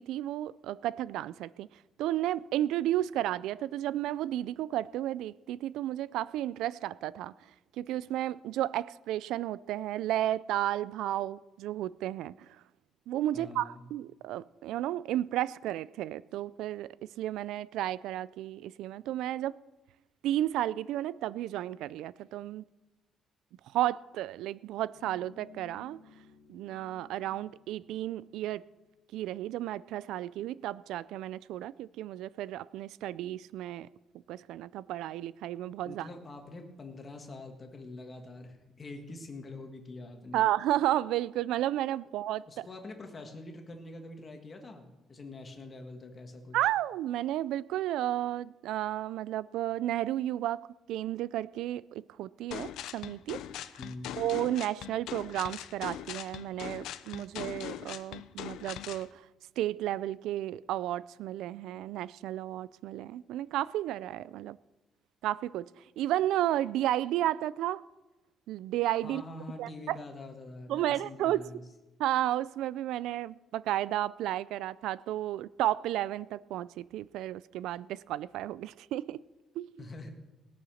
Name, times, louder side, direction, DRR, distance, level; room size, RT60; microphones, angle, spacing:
voice 1, 0.0-1.7 2.0-7.3 7.8-12.6 13.1-19.6 20.2-22.6 23.7-26.0 26.5-28.6 29.1-33.9 34.3-36.1 40.3-42.7 46.5-53.4 54.2-59.2 59.6-64.6 65.2-65.6 66.0-67.8 68.5-69.2 69.6-70.0 70.7-71.6 72.0-79.2 79.6-79.7, right 13 dB, 85° right, 0.3 m, -32 dB
voice 2, 13.3-13.8 35.8-40.5 42.5-46.6 53.8-54.1 69.0-71.6 79.8-80.1, left 2 dB, 25° left, 1.6 m, -45 dB
sound 1, 24.9-28.9, left 6 dB, 65° left, 1.0 m, -58 dB
sound 2, 52.5-59.1, left 11 dB, 80° left, 0.6 m, -41 dB
20.0 x 6.9 x 6.4 m
cardioid pair, 180°, 0 cm